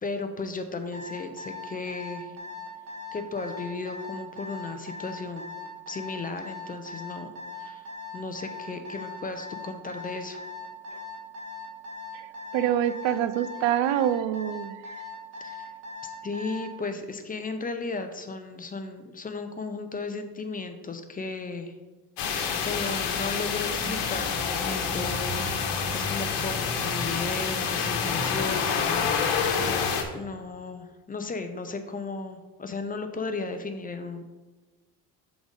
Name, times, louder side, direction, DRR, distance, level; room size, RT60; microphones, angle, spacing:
voice 1, 0.0-2.3 3.1-5.5 5.9-7.3 7.6-10.4 15.4-15.7 16.2-21.8 22.6-29.9 30.1-34.2, left 3 dB, 20° left, 7 dB, 0.4 m, -35 dB
Alarm, 0.9-16.7, left 4 dB, 45° right, 1.9 m, -40 dB
voice 2, 12.5-14.8, right 11 dB, 85° right, 13 dB, 0.5 m, -26 dB
sound 1, 22.2-30.0, left 6 dB, 75° left, 1.1 m, -27 dB
6.0 x 4.0 x 5.1 m, 1.2 s
cardioid pair, 125°, 42 cm